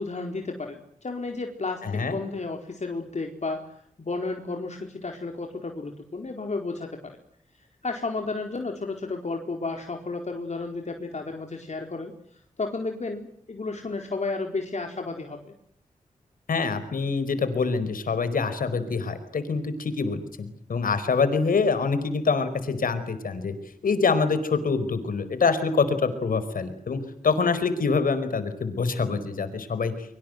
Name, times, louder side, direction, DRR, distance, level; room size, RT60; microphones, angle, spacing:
voice 1, 0.0-7.2 7.8-15.5, left 3 dB, 55° left, 3 dB, 4.4 m, -33 dB
voice 2, 1.8-2.2 16.5-23.5 23.8-30.2, left 4 dB, 85° left, 12 dB, 4.9 m, -25 dB
25.5 x 25.0 x 8.0 m, 0.70 s
cardioid pair, 45°, 14 cm